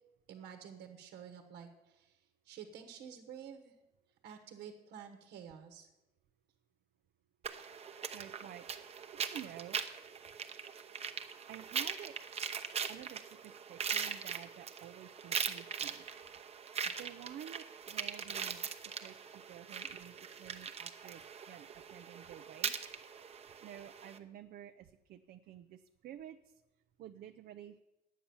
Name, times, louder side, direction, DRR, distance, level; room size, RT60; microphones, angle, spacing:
voice 1, 0.3-3.8 4.2-5.9, right 8 dB, 80° right, 5 dB, 1.2 m, -50 dB
sound 1, 7.4-24.2, right 6 dB, 35° right, 0.9 m, -41 dB
voice 2, 8.1-8.7 9.2-9.8 11.5-12.2 12.9-16.1 16.8-22.7 23.6-26.6 27.0-27.8, right 11 dB, 60° right, 8 dB, 0.5 m, -51 dB
10.5 x 8.5 x 7.0 m, 1.0 s
cardioid pair, 110°, 17 cm